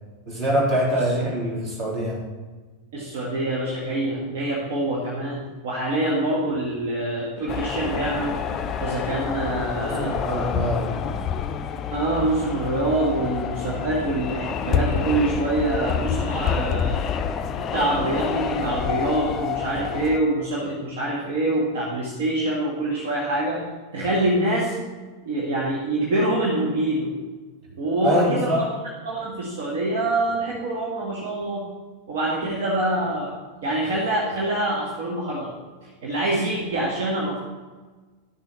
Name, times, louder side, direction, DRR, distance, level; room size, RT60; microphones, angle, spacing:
voice 1, 0.3-2.2 9.1-9.2 9.8-11.0 28.0-28.6, equal, 30° right, -3 dB, 3.4 m, -24 dB
voice 2, 2.9-8.4 8.8-10.1 11.9-17.0 17.6-23.7 23.9-24.8 25.2-27.2 27.7-28.7 29.1-31.7 32.1-33.3 33.6-35.5 35.8-37.4, right 1 dB, 55° right, -4 dB, 1.8 m, -25 dB
sound 1, 7.5-20.2, left 7 dB, 30° left, 0.5 m, -28 dB
11.5 x 7.1 x 4.2 m, 1.3 s
figure-of-eight pair, 90°, 0 cm